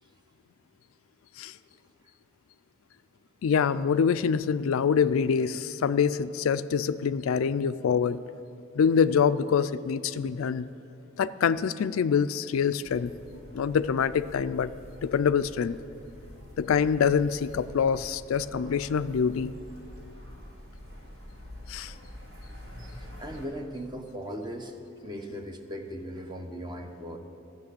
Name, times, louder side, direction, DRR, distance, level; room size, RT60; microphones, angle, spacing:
voice 1, 3.4-8.2 8.8-10.7 11.2-13.1 13.5-14.7 15.0-15.8 16.6-19.6 21.7-21.9, left 6 dB, 75° left, 14 dB, 0.4 m, -25 dB
sound 1, 12.8-23.5, left 1 dB, 80° right, 3.2 m, -46 dB
voice 2, 23.2-24.7 25.0-27.2, equal, 20° right, 5 dB, 0.9 m, -38 dB
14.5 x 6.6 x 8.3 m, 2.8 s
head